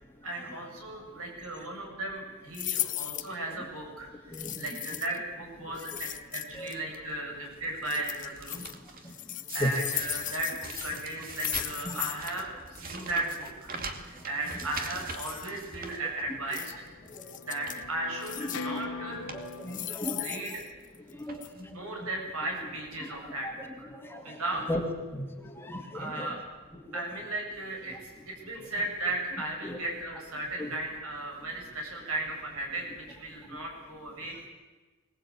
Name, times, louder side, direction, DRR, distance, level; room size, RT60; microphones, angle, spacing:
voice 1, 0.2-8.6 9.5-13.7 14.3-16.8 17.5-19.3 19.9-20.5 21.7-23.5 23.8-23.9 24.2-24.6 25.9-26.4 26.9-34.5, right 2 dB, 70° right, 1 dB, 7.7 m, -36 dB
sound 1, 2.5-3.3 4.3-5.2 5.8-6.7 7.9-8.7 9.1-12.4 12.7-12.8 13.1-13.4 14.5-15.5 16.5-16.7 17.1-17.8 18.2-18.8 19.5-21.1 21.4-21.5, left 13 dB, 35° left, 0.9 m, -37 dB
voice 2, 4.3-4.8 5.6-6.0 6.5-6.7 8.5-8.6 9.6-9.7 11.8-12.0 13.0-13.1 17.1-17.3 18.4-18.8 19.2-20.4 21.1-21.7 22.0-22.1 23.0-24.8 25.1-26.4 26.9-27.0 27.9-28.0 29.6-29.8 30.1-30.2 30.6-30.7, left 1 dB, 10° left, 2 dB, 2.5 m, -37 dB
sound 2, 6.5-7.0 7.5-7.9 8.1-9.1 9.5-16.6 17.0-17.1 17.5-17.9 18.7-18.8 19.1-19.4 19.8-19.9 20.7-20.9 21.3-21.8 22.5-22.6 22.8-22.9, right 4 dB, 40° right, 2.4 m, -43 dB
sound 3, 16.4-19.9, left 4 dB, 75° left, 1.7 m, -41 dB
24.5 x 19.0 x 8.7 m, 1.3 s
head